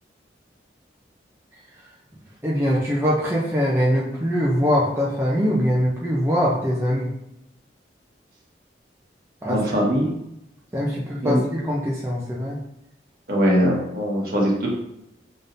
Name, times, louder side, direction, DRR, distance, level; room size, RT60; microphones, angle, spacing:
voice 1, 2.4-7.1 9.4-9.6 10.7-12.6, equal, 15° right, -5 dB, 0.6 m, -22 dB
voice 2, 9.5-10.1 11.2-11.4 13.3-14.7, equal, 55° right, -4 dB, 1.4 m, -21 dB
5.3 x 3.7 x 2.7 m, 0.84 s
head